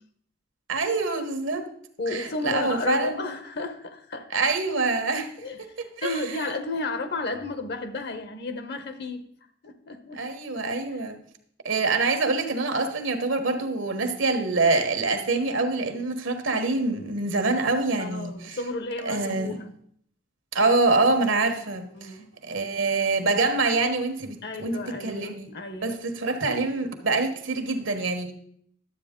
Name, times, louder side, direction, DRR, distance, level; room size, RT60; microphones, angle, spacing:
voice 1, 0.7-1.6 2.1-3.2 4.3-5.3 5.6-5.7 6.0-6.4 10.1-11.2 11.6-18.6 19.0-19.6 20.5-22.2 22.4-24.7 25.0-25.5 25.8-28.3, right 3 dB, 75° right, 6 dB, 1.3 m, -25 dB
voice 2, 2.0-4.3 5.4-5.6 6.0-9.2 9.6-10.2 10.9-11.0 18.0-19.7 21.9-22.3 24.4-26.0, left 3 dB, 60° left, 8 dB, 1.0 m, -33 dB
11.5 x 8.0 x 3.7 m, 0.66 s
head